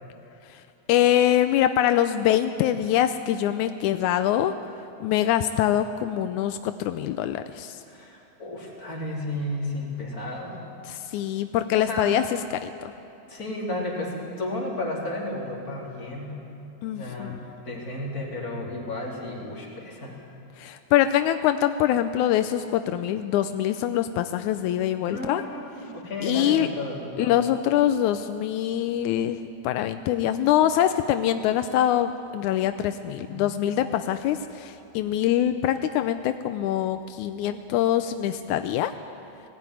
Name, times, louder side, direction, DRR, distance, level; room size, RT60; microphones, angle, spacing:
voice 1, 0.9-4.5 5.0-7.8 10.9-12.2 12.5-12.9 16.8-17.3 20.6-25.4 26.2-26.7 27.2-38.9, left 11 dB, 85° left, 9 dB, 2.1 m, -24 dB
voice 2, 7.9-10.6 11.8-12.2 13.3-16.3 16.9-17.4 17.6-20.2 25.1-27.4 33.2-33.4, left 1 dB, 30° left, -3 dB, 3.9 m, -33 dB
19.5 x 16.5 x 9.9 m, 2.9 s
omnidirectional pair, 3.4 m